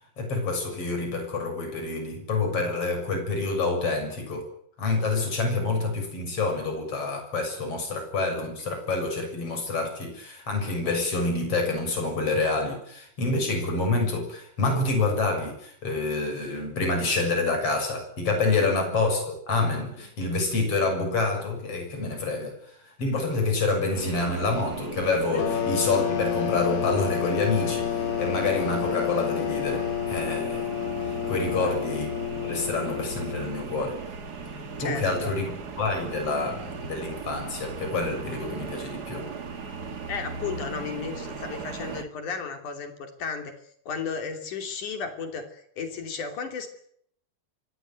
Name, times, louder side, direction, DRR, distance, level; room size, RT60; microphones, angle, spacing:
voice 1, 0.2-4.5 4.8-30.7 31.3-32.1 32.4-34.0 34.8-39.3, left 3 dB, 35° left, 4 dB, 7.9 m, -27 dB
sound 1, 23.9-42.0, right 4 dB, 45° right, 1.3 m, -37 dB
sound 2, 25.4-33.8, left 11 dB, 90° left, 3.9 m, -30 dB
voice 2, 31.4-31.8 34.8-35.3 40.1-43.5 43.9-46.7, left 5 dB, 55° left, 6 dB, 4.2 m, -34 dB
25.0 x 18.0 x 9.2 m, 0.68 s
omnidirectional pair, 4.5 m